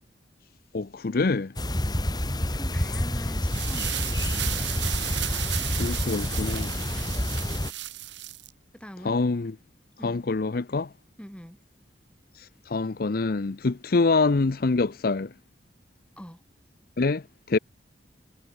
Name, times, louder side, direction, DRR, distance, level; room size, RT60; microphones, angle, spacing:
voice 1, 0.7-1.5 5.8-6.7 9.0-9.6 10.0-10.9 12.4-15.3 17.0-17.6, left 3 dB, 55° left, 0.6 m, -25 dB
sound 1, 1.6-7.7, left 1 dB, 25° left, 2.2 m, -28 dB
voice 2, 1.7-2.2 2.5-4.7 7.1-7.3 8.7-9.2 10.0-10.2 11.2-11.6 16.2-16.4, equal, 5° left, 5.5 m, -43 dB
sound 2, 3.3-8.5, right 13 dB, 85° right, 1.8 m, -34 dB
head